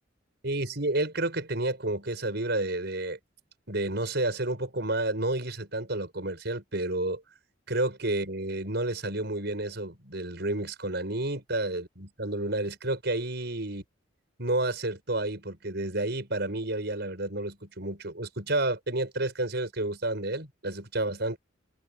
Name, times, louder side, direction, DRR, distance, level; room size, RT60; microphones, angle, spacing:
voice 1, 0.4-3.2 3.7-7.2 7.7-13.8 14.4-21.4, right 2 dB, 60° right, 6.5 m, -30 dB
head